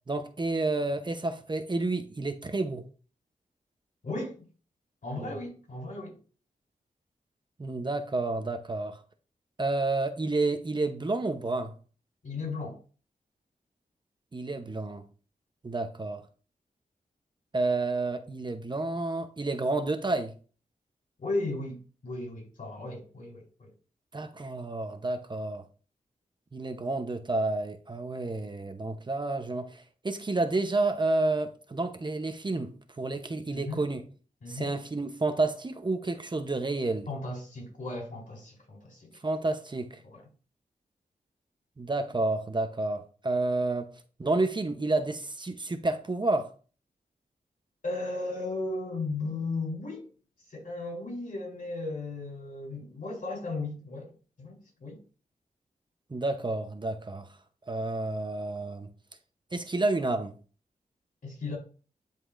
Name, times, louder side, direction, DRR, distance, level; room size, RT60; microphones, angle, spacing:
voice 1, 0.1-2.8 5.2-5.3 7.6-9.0 9.6-11.7 14.3-15.0 15.6-16.2 17.5-20.3 24.1-25.7 26.5-34.0 34.5-37.1 39.2-40.0 41.8-43.9 44.2-46.5 56.1-57.3 57.7-58.9 59.5-60.3, right 2 dB, 30° right, 0.8 m, -30 dB
voice 2, 4.0-4.4 5.0-6.2 12.2-12.8 21.2-23.7 33.5-33.8 34.4-34.7 37.1-39.1 40.0-40.2 47.8-50.0 50.5-54.1 54.4-55.0 61.2-61.6, left 2 dB, 65° left, 3.7 m, -35 dB
11.0 x 4.2 x 2.5 m
wide cardioid pair, 70°, 15 cm